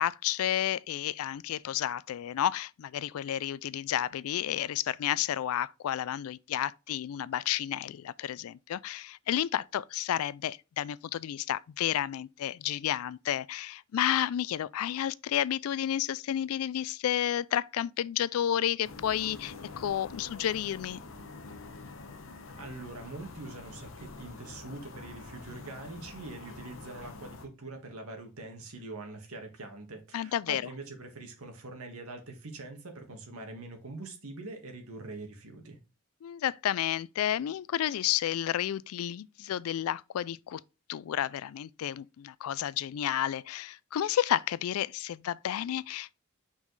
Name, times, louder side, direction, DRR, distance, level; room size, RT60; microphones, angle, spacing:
voice 1, 0.0-21.0 30.1-30.6 36.2-40.6 40.9-46.2, left 11 dB, 80° left, 0.3 m, -31 dB
sound 1, 18.8-27.5, left 3 dB, 65° left, 0.8 m, -46 dB
voice 2, 22.6-35.8, right 2 dB, 85° right, 1.6 m, -44 dB
5.5 x 5.0 x 3.9 m
head